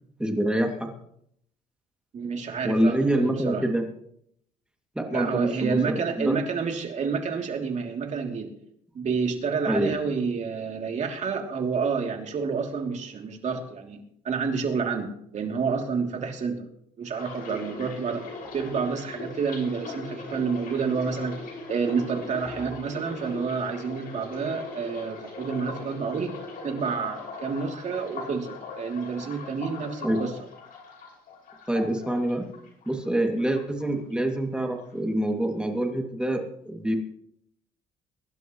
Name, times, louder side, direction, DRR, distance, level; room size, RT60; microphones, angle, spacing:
voice 1, 0.2-0.9 2.6-3.8 4.9-6.4 9.7-9.9 30.0-30.2 31.7-32.5 32.9-37.0, right 1 dB, 5° right, 2 dB, 2.5 m, -26 dB
voice 2, 2.1-3.7 5.1-8.5 8.9-14.0 14.2-16.6 17.0-21.3 21.7-30.3, right 5 dB, 45° right, 2 dB, 3.1 m, -29 dB
sound 1, 17.1-33.1 33.4-34.3 34.6-34.9, left 3 dB, 60° left, 6.0 m, -40 dB
sound 2, 18.4-18.9 22.4-22.9, left 2 dB, 10° left, 1.8 m, -47 dB
23.0 x 11.5 x 3.2 m, 0.71 s
cardioid pair, 110°, 17 cm